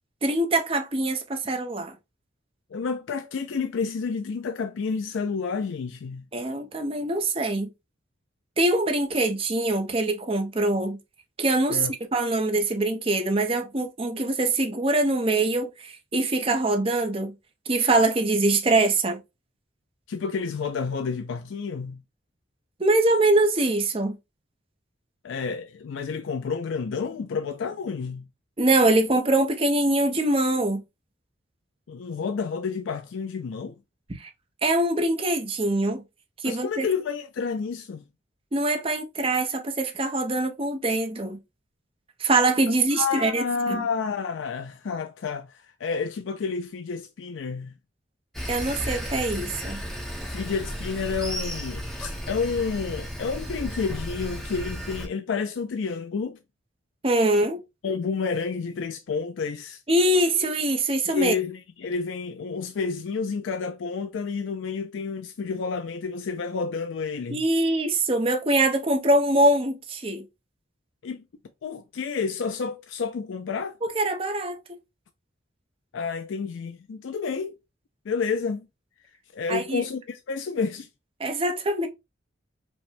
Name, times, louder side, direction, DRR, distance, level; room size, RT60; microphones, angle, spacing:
voice 1, 0.2-2.0 6.3-7.7 8.6-11.0 11.4-17.3 17.7-19.2 22.8-24.2 28.6-30.8 34.2-34.3 34.6-36.0 36.4-36.9 38.5-41.4 42.2-43.8 48.5-49.8 57.0-57.6 59.9-61.3 67.3-70.3 73.8-74.8 79.5-79.8 81.2-81.9, right 2 dB, 30° right, 0.7 m, -23 dB
voice 2, 2.7-6.3 11.7-11.9 20.1-22.0 25.2-28.3 31.9-33.8 36.5-38.0 42.9-47.7 50.3-56.4 57.8-59.8 61.1-67.4 71.0-71.2 71.6-73.8 75.9-77.5 78.0-78.7 79.3-80.9, left 5 dB, 85° left, 0.4 m, -30 dB
Sawing, 48.3-55.1, equal, ahead, 0.7 m, -34 dB
5.0 x 2.2 x 3.4 m
head